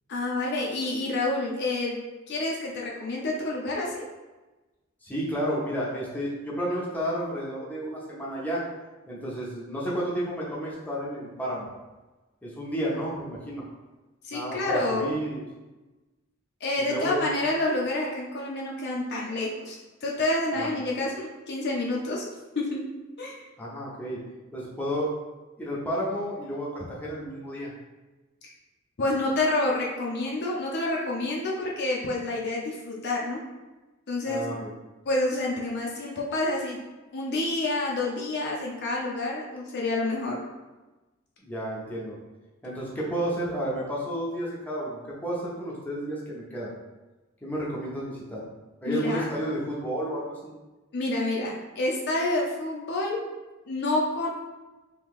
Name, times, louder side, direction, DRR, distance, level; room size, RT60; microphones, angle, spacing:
voice 1, 0.1-2.0 2.3-4.0 14.2-15.1 16.6-22.2 22.6-22.8 23.2-23.4 29.0-33.4 34.1-34.4 35.1-36.8 37.1-40.4 48.8-49.3 50.9-53.2 53.7-54.3, left 2 dB, 55° left, -2 dB, 0.5 m, -28 dB
voice 2, 5.0-8.6 9.1-11.7 12.4-13.6 14.3-15.4 16.8-17.5 20.6-20.8 23.6-24.2 24.5-25.1 25.6-27.7 34.3-34.7 41.4-42.2 42.6-46.7 47.4-48.4 48.8-50.5, equal, 10° left, -6 dB, 0.7 m, -31 dB
3.0 x 2.8 x 3.6 m, 1.1 s
head